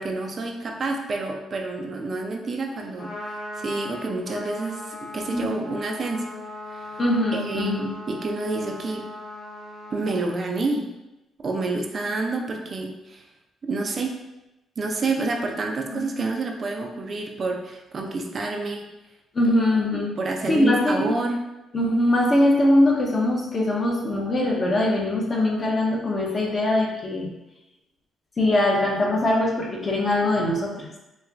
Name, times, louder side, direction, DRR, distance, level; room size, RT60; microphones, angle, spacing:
voice 1, 0.0-6.3 6.7-7.0 7.3-9.0 9.9-10.9 11.4-13.2 13.6-14.1 14.8-18.9 19.9-21.4, right 3 dB, 45° right, 2 dB, 0.4 m, -28 dB
Trumpet, 2.8-10.4, left 2 dB, 75° left, 0.7 m, -38 dB
voice 2, 5.3-5.7 7.0-7.9 15.9-16.0 19.3-20.1 20.5-21.1 21.7-27.3 28.4-30.9, left 1 dB, 40° left, -2 dB, 0.8 m, -22 dB
4.2 x 2.2 x 2.4 m, 0.95 s
cardioid pair, 90°, 0 cm